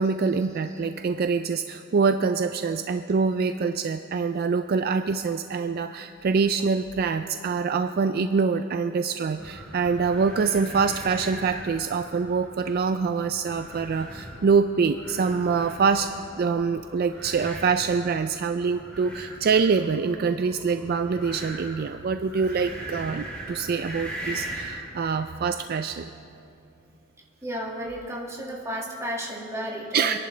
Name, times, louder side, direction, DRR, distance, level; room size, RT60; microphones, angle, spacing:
voice 1, 0.0-16.1 16.4-26.1 29.9-30.2, right 5 dB, 45° right, 8 dB, 0.4 m, -25 dB
sound 1, 9.4-24.9, right 1 dB, 5° left, 2.8 m, -40 dB
voice 2, 27.4-30.2, equal, 15° right, -3 dB, 2.0 m, -33 dB
27.0 x 11.0 x 3.3 m, 2.8 s
head